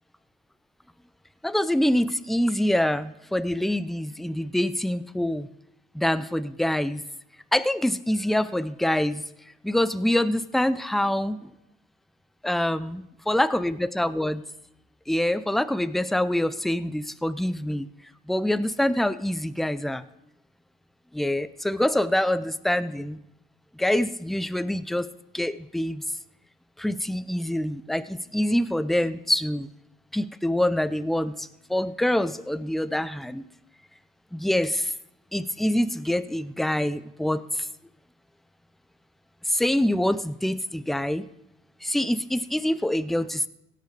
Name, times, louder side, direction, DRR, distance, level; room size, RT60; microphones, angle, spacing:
voice 1, 1.4-5.5 5.9-7.0 7.5-9.2 9.6-11.5 12.4-13.0 13.3-14.4 15.1-17.9 18.3-20.0 21.1-23.2 23.8-25.1 25.3-26.0 26.8-29.7 30.1-33.5 34.3-34.9 35.3-37.7 39.5-41.3 41.8-43.5, left 1 dB, ahead, 14 dB, 0.5 m, -25 dB
16.5 x 6.7 x 4.8 m, 0.83 s
cardioid pair, 90°, 20 cm